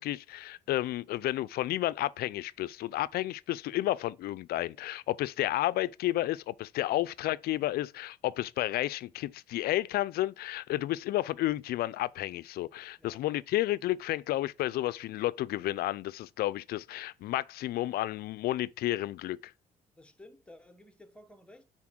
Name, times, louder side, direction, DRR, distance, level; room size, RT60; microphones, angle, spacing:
voice 1, 0.0-19.5, left 15 dB, 65° left, 0.4 m, -31 dB
voice 2, 20.0-21.6, left 1 dB, 5° left, 1.1 m, -54 dB
6.0 x 4.1 x 6.1 m
cardioid pair, 110°, 17 cm